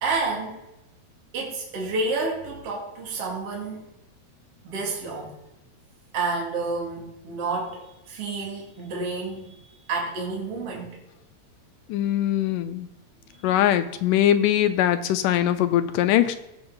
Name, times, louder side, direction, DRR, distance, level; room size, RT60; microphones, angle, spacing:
voice 1, 0.0-0.6 1.3-3.8 4.6-5.3 6.1-11.0 13.3-13.4, right 3 dB, 45° right, -2 dB, 3.1 m, -30 dB
voice 2, 11.9-12.9 13.4-16.4, left 11 dB, 80° left, 10 dB, 2.0 m, -21 dB
16.0 x 6.0 x 3.9 m, 0.90 s
omnidirectional pair, 4.0 m